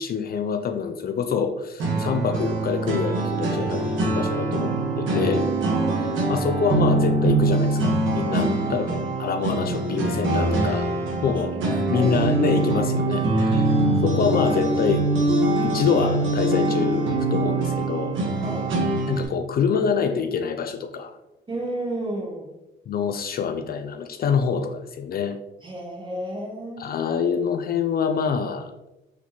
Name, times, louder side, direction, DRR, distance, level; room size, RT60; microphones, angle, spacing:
voice 1, 0.0-5.5 6.3-10.9 11.2-11.6 11.9-13.6 14.0-15.1 15.6-18.2 19.1-21.1 22.9-25.4 26.8-28.7, left 6 dB, 50° left, 6 dB, 0.4 m, -26 dB
sound 1, 1.8-19.2, right 2 dB, 80° right, 1.3 m, -23 dB
voice 2, 5.7-6.5 8.4-8.8 11.2-12.1 18.3-18.7 21.5-22.5 25.6-26.9, right 1 dB, 25° right, -2 dB, 1.5 m, -33 dB
4.3 x 4.0 x 2.9 m, 0.97 s
cardioid pair, 90°, 20 cm